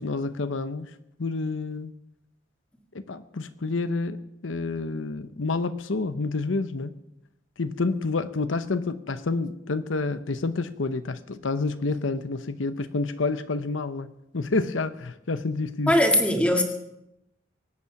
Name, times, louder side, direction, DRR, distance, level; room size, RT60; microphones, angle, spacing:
voice 1, 0.0-1.9 2.9-6.9 7.6-15.9, left 3 dB, 90° left, 11 dB, 0.8 m, -29 dB
voice 2, 15.9-16.6, left 1 dB, 5° left, 3 dB, 1.8 m, -20 dB
23.5 x 8.5 x 5.9 m, 0.85 s
head